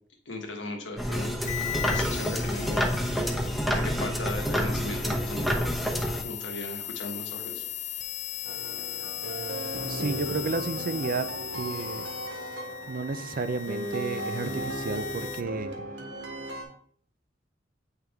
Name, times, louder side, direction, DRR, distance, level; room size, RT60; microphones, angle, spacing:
voice 1, 0.2-1.3 1.9-2.9 3.7-5.6 6.2-7.6, left 2 dB, 90° left, 2 dB, 1.3 m, -37 dB
sound 1, 1.0-6.2, equal, ahead, 0.8 m, -28 dB
sound 2, 1.4-15.4, left 12 dB, 40° left, 0.4 m, -38 dB
sound 3, 8.5-16.6, right 1 dB, 90° right, 1.5 m, -36 dB
voice 2, 9.9-12.1 12.9-15.8, right 4 dB, 50° right, 11 dB, 0.5 m, -32 dB
9.1 x 3.4 x 3.5 m, 0.62 s
head